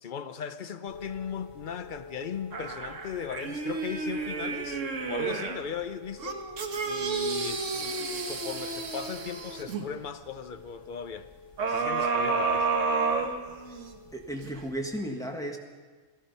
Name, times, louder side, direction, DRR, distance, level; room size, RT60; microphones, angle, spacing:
voice 1, 0.0-4.8 5.1-6.4 6.9-11.3 11.7-12.7, left 7 dB, 50° left, 0.6 m, -38 dB
sound 1, 0.9-15.0, left 4 dB, 85° left, 3.8 m, -50 dB
sound 2, 2.5-5.7 6.2-9.9 11.6-13.9 14.4-14.5, right 4 dB, 65° right, 1.4 m, -30 dB
voice 2, 14.1-15.6, right 1 dB, 5° left, 1.4 m, -34 dB
17.5 x 13.0 x 5.4 m
omnidirectional pair, 1.4 m